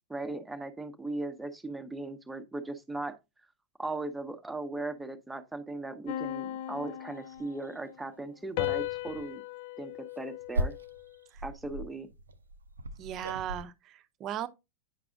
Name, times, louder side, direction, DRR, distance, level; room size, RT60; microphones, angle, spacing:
voice 1, 0.1-3.2 3.8-9.4 9.8-10.7 11.4-12.1, right 2 dB, 5° right, 0.9 m, -38 dB
sound 1, 6.1-7.8 8.6-11.2, left 14 dB, 50° left, 0.5 m, -37 dB
Golf Swing Swoosh, 6.2-6.3 6.8-6.9 7.3-7.8 8.5-8.7 9.1-9.3 9.9-13.6, right 1 dB, 75° right, 0.5 m, -37 dB
voice 2, 13.0-14.5, right 10 dB, 35° right, 0.7 m, -37 dB
9.1 x 5.9 x 2.4 m
figure-of-eight pair, 90°, 0 cm